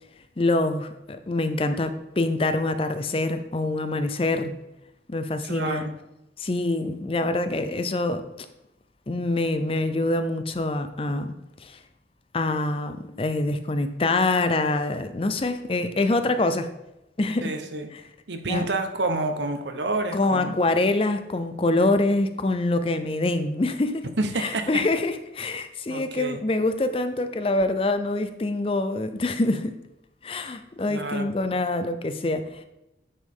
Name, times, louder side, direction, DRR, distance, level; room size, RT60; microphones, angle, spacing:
voice 1, 0.4-4.5 5.1-5.8 6.4-8.3 9.1-11.3 11.6-11.8 12.3-16.7 17.2-17.5 17.9-18.0 18.5-18.6 20.1-24.1 24.4-29.7 30.2-32.6, left 2 dB, 30° left, 0.5 m, -25 dB
voice 2, 5.5-5.9 17.4-17.9 18.3-20.5 24.2-24.8 25.9-26.4 30.9-31.3, right 2 dB, 75° right, 0.9 m, -28 dB
9.6 x 5.3 x 3.6 m
head